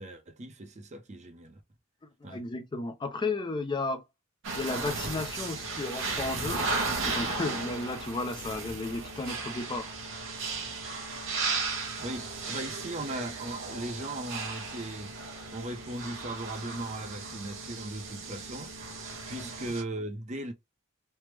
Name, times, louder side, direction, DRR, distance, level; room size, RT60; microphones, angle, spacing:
voice 1, 0.0-1.6 2.2-2.4 12.0-15.1 15.5-18.7 19.3-20.5, right 2 dB, 35° right, 0.6 m, -38 dB
voice 2, 2.2-4.0 4.6-6.6 7.0-9.9 19.3-19.5, left 3 dB, 20° left, 0.4 m, -33 dB
sound 1, 4.4-19.8, right 3 dB, 65° right, 1.0 m, -35 dB
3.3 x 2.0 x 3.1 m
head